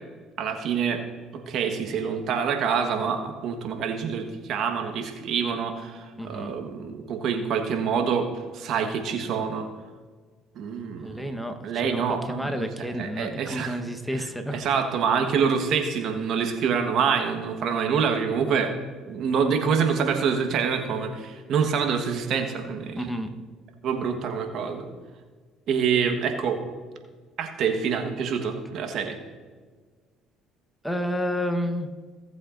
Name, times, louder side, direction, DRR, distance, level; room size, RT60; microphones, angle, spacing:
voice 1, 0.4-1.0 1.5-8.3 8.5-9.7 10.6-11.3 11.6-12.6 13.0-13.7 14.2-14.3 14.5-18.7 19.1-23.0 23.8-24.9 25.7-26.6 27.4-29.2, right 6 dB, 60° right, 5 dB, 1.3 m, -26 dB
voice 2, 6.2-6.5 11.0-14.6 23.0-23.3 30.8-31.9, equal, ahead, 6 dB, 1.2 m, -30 dB
17.5 x 7.8 x 2.6 m, 1.4 s
supercardioid pair, 70°, 0 cm